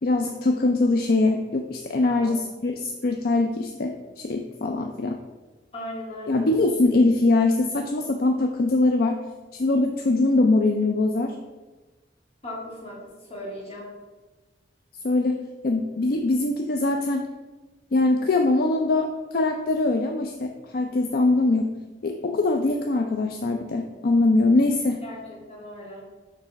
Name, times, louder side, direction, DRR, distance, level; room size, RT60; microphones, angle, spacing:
voice 1, 0.0-5.2 6.3-9.2 9.5-11.4 15.0-17.2 17.9-21.7 22.0-25.0, left 2 dB, 55° left, 4 dB, 0.5 m, -22 dB
voice 2, 5.7-6.5 12.4-13.9 25.0-26.1, left 1 dB, 35° left, -4 dB, 2.1 m, -38 dB
7.4 x 3.3 x 6.2 m, 1.2 s
head